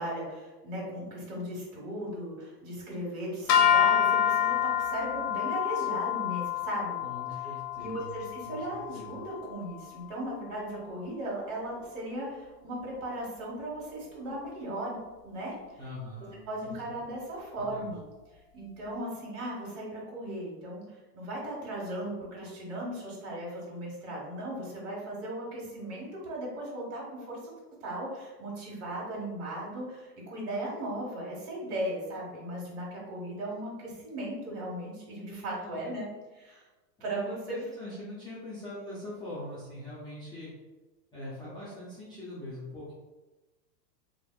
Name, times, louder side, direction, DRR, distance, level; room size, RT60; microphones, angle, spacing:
voice 1, 0.0-7.0 7.8-15.0 15.2-15.5 16.5-18.0 18.5-27.4 27.8-36.0 36.3-36.6 37.0-37.6, right 1 dB, 45° right, -4 dB, 1.4 m, -37 dB
sound 1, 3.5-9.8, left 9 dB, 90° left, 0.6 m, -28 dB
voice 2, 7.0-9.1 15.8-16.8 17.6-17.9 35.4-36.0 37.0-40.5 41.1-42.9, left 1 dB, 10° left, -11 dB, 0.4 m, -43 dB
3.4 x 2.6 x 2.2 m, 1.2 s
supercardioid pair, 130°, 49 cm